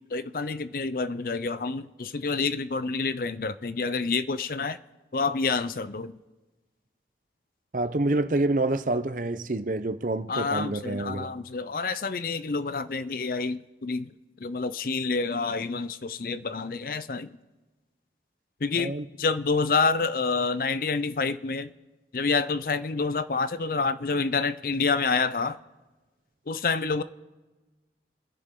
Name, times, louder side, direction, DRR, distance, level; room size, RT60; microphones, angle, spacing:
voice 1, 0.1-4.8 5.1-6.2 10.3-14.1 14.4-17.4 18.6-21.7 22.1-25.6 26.5-27.0, left 4 dB, 50° left, 0.5 m, -28 dB
voice 2, 7.7-11.3 18.8-19.0, right 2 dB, 45° right, 0.7 m, -27 dB
28.5 x 11.0 x 3.7 m
head